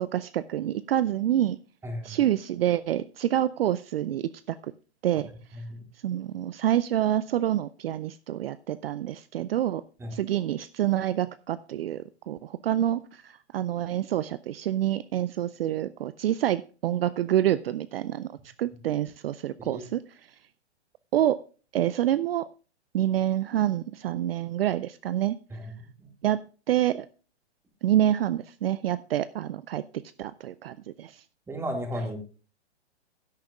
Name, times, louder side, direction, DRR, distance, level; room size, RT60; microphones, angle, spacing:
voice 1, 0.0-1.6 2.0-4.7 5.0-5.3 6.0-9.8 10.1-18.3 18.6-20.0 21.1-21.4 21.7-22.4 22.9-25.4 26.2-26.4 26.7-27.1 27.8-29.8 30.2-31.2, right 12 dB, 55° right, 16 dB, 0.5 m, -27 dB
voice 2, 1.8-2.2 5.5-5.8 10.0-10.2 19.7-19.8 25.5-25.7 26.0-26.1 31.5-32.2, equal, 5° right, 4 dB, 2.0 m, -34 dB
16.0 x 8.9 x 2.3 m, 0.37 s
hypercardioid pair, 125°, 34 cm